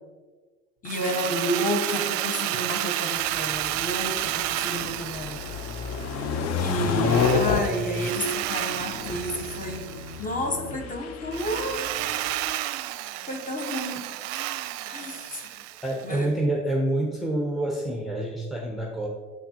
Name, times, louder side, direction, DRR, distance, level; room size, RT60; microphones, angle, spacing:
voice 1, 0.8-5.4 6.6-9.9 10.2-11.9 13.3-14.1 14.9-15.6 16.0-16.3, equal, 20° left, 4 dB, 1.1 m, -31 dB
Drill, 0.9-6.4 7.0-10.3 11.3-16.1, right 14 dB, 60° right, 0.5 m, -31 dB
voice 2, 2.5-2.8 7.0-8.1 15.8-19.1, right 1 dB, ahead, 0 dB, 0.7 m, -28 dB
sound 1, 3.2-12.5, left 5 dB, 45° left, 0.7 m, -30 dB
7.6 x 5.8 x 2.8 m, 1.4 s
hypercardioid pair, 85°, 36 cm